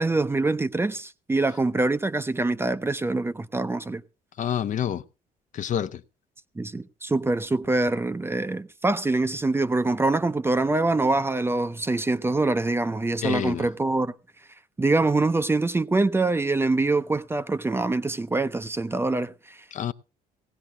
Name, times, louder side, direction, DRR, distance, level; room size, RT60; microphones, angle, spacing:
voice 1, 0.0-4.0 6.6-14.1 14.8-19.6, right 2 dB, 15° right, 0.6 m, -24 dB
voice 2, 4.4-5.0 5.5-6.0 13.2-13.7 19.7-19.9, left 9 dB, 50° left, 0.7 m, -28 dB
18.5 x 16.0 x 2.3 m
cardioid pair, 110°, 17 cm